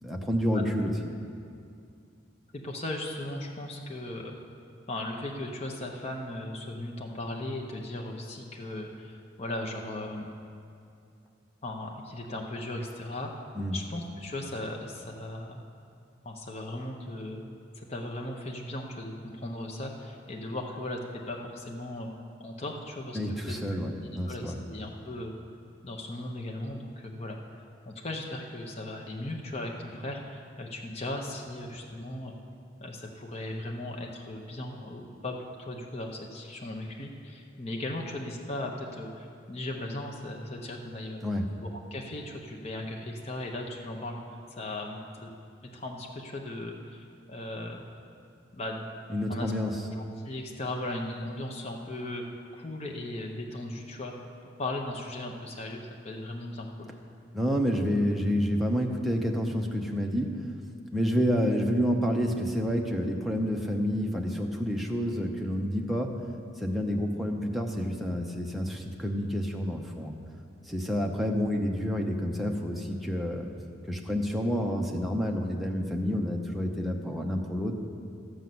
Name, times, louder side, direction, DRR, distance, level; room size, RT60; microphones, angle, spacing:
voice 1, 0.0-0.9 13.5-13.8 23.1-24.6 41.2-41.5 49.1-49.8 57.3-60.4 60.9-66.2 66.6-70.2 70.7-73.5 73.9-77.7, equal, ahead, 0 dB, 0.7 m, -29 dB
voice 2, 2.5-4.4 4.9-10.3 11.6-13.3 13.7-15.6 16.2-17.4 17.8-22.1 22.4-24.0 24.3-25.3 25.8-32.4 32.8-41.2 41.6-44.2 44.5-45.3 45.6-47.8 48.5-48.9 49.3-49.7 50.0-52.2 52.5-54.1 54.6-56.9, left 1 dB, 30° left, 0 dB, 0.8 m, -37 dB
13.0 x 5.5 x 7.7 m, 2.4 s
head